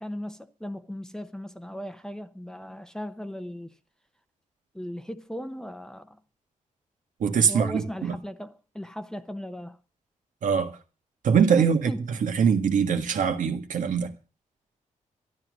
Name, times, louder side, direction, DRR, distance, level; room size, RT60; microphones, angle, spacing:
voice 1, 0.0-3.7 4.7-6.2 7.5-9.8 11.6-12.1, equal, 5° left, 0.8 m, -37 dB
voice 2, 7.2-8.1 10.4-10.8 11.2-14.1, right 6 dB, 75° right, 1.7 m, -23 dB
12.5 x 11.5 x 6.3 m
wide cardioid pair, 135°, 13 cm